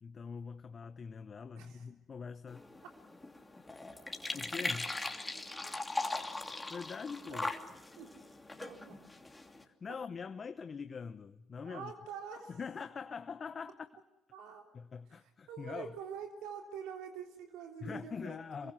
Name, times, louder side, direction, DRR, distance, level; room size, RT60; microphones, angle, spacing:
voice 1, 0.0-2.7 4.3-5.0 6.7-7.5 9.6-11.9 12.5-13.9 14.7-15.9 17.8-18.7, left 5 dB, 45° left, 11 dB, 0.8 m, -43 dB
voice 2, 1.5-1.9 5.6-5.7 7.2-7.5 8.0-8.1 8.6-9.0 11.6-12.6 14.3-14.7 15.5-18.4 18.6-18.7, right 7 dB, 80° right, 2 dB, 3.4 m, -46 dB
sound 1, 2.5-9.6, left 2 dB, 15° left, 2.8 m, -40 dB
27.0 x 22.5 x 6.3 m, 0.95 s
hypercardioid pair, 60°, 0 cm